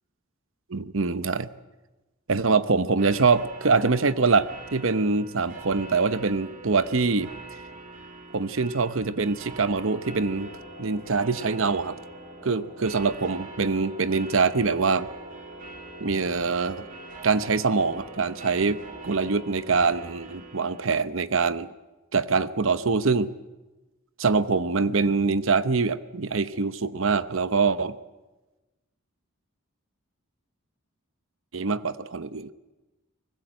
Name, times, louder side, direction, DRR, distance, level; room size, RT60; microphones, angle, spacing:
voice 1, 0.7-1.5 2.3-7.3 8.3-10.5 10.8-12.0 12.4-15.1 16.0-16.9 17.2-21.7 22.1-23.3 24.2-28.0 31.5-32.5, right 4 dB, 65° right, 14 dB, 0.9 m, -24 dB
sound 1, 3.0-20.9, right 3 dB, 40° right, 2.9 m, -44 dB
sound 2, 9.7-19.6, left 2 dB, 90° left, 3.3 m, -47 dB
23.5 x 20.0 x 7.9 m, 1.1 s
head